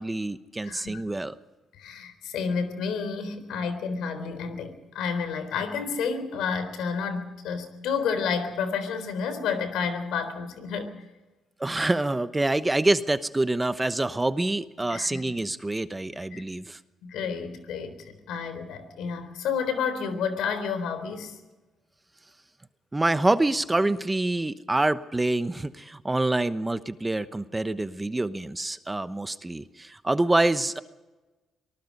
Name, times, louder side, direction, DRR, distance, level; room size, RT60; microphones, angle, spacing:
voice 1, 0.0-1.3 11.6-16.8 22.9-30.8, right 2 dB, 15° right, 12 dB, 1.0 m, -26 dB
voice 2, 0.6-1.0 1.8-10.9 14.9-15.4 16.3-16.4 17.0-21.4, left 6 dB, 85° left, 10 dB, 3.7 m, -30 dB
25.0 x 19.5 x 5.4 m, 1.1 s
cardioid pair, 90°, 0 cm